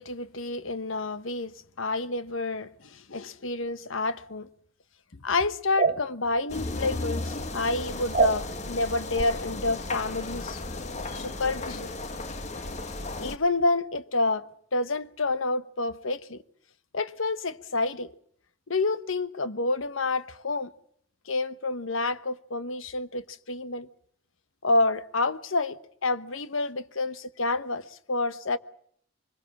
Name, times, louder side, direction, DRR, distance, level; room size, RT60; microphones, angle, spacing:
voice 1, 0.0-4.5 5.1-10.6 11.1-11.9 13.2-16.4 16.9-18.1 18.7-20.7 21.3-23.9 24.6-28.6, left 3 dB, 80° left, 1.1 m, -29 dB
sound 1, 5.7-6.0 8.1-8.4 9.1-9.3, right 4 dB, 40° right, 1.3 m, -23 dB
sound 2, 6.5-13.4, left 2 dB, 35° left, 1.3 m, -35 dB
24.0 x 22.0 x 7.3 m
head